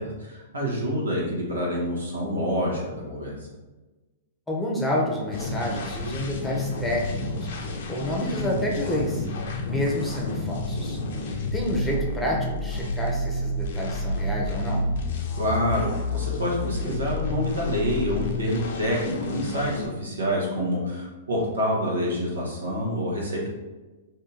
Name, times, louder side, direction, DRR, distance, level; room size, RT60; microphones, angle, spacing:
voice 1, 0.0-3.4 15.4-23.5, equal, 85° right, -3 dB, 1.1 m, -27 dB
voice 2, 4.5-7.5 7.9-9.3 9.6-11.0 11.5-14.9, left 1 dB, 10° left, -2 dB, 0.8 m, -29 dB
sound 1, 5.3-19.9, left 2 dB, 60° left, 0.5 m, -30 dB
2.7 x 2.7 x 3.7 m, 1.2 s
hypercardioid pair, 110°, 0 cm